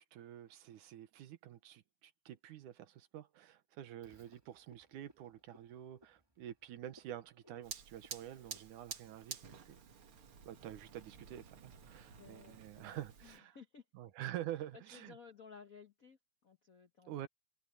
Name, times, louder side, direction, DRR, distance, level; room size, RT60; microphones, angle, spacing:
voice 1, 0.0-9.8 10.5-13.6 13.9-15.1 17.1-17.3, right 12 dB, 80° right, 2.6 m, -48 dB
Frog, 4.0-9.2, equal, 10° right, 1.6 m, -67 dB
Fire, 7.6-13.4, right 7 dB, 50° right, 2.4 m, -51 dB
voice 2, 12.1-13.8 14.7-17.3, left 5 dB, 70° left, 0.8 m, -57 dB
omnidirectional pair, 3.6 m